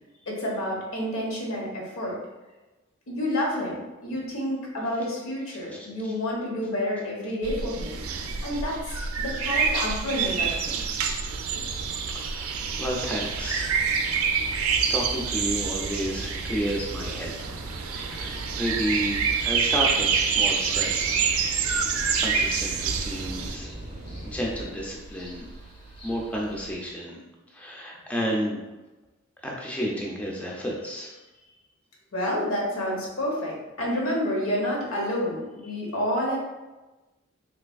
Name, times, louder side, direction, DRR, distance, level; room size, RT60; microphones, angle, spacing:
voice 1, 0.3-2.2 3.1-8.0 8.4-10.8 32.1-36.4, left 1 dB, 80° left, -3 dB, 1.0 m, -29 dB
sound 1, 7.4-23.6, right 6 dB, 90° right, 0.4 m, -27 dB
voice 2, 11.7-13.8 14.9-17.5 17.9-21.2 22.2-23.7 24.3-25.4 26.0-27.2 27.5-28.6 29.4-31.2, equal, 5° left, -2 dB, 0.4 m, -31 dB
sound 2, 13.7-24.7, right 1 dB, 40° right, 0.7 m, -43 dB
sound 3, 14.5-26.7, right 1 dB, 25° left, 0.8 m, -45 dB
3.3 x 3.2 x 2.3 m, 1.1 s
head